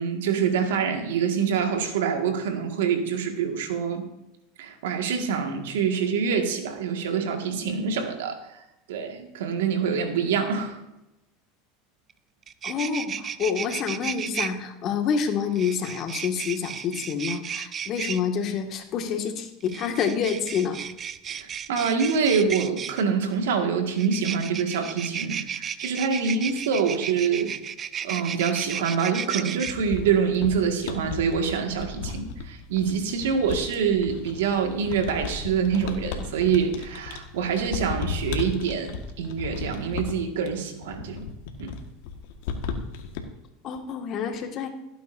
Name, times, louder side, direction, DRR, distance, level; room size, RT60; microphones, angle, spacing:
voice 1, 0.0-4.0 4.6-8.6 8.9-10.8 21.2-27.5 28.0-41.3 41.6-41.8, right 6 dB, 80° right, 4 dB, 1.8 m, -26 dB
sound 1, 12.1-12.2 12.4-14.5 15.6-18.2 19.6-23.0 23.9-29.7, right 8 dB, 35° right, 0.6 m, -33 dB
voice 2, 12.6-20.8 43.6-44.7, left 7 dB, 45° left, 4 dB, 1.8 m, -28 dB
sound 2, 29.7-43.2, left 6 dB, 70° left, 1.5 m, -35 dB
17.0 x 9.2 x 2.6 m, 0.93 s
hypercardioid pair, 95°, 0 cm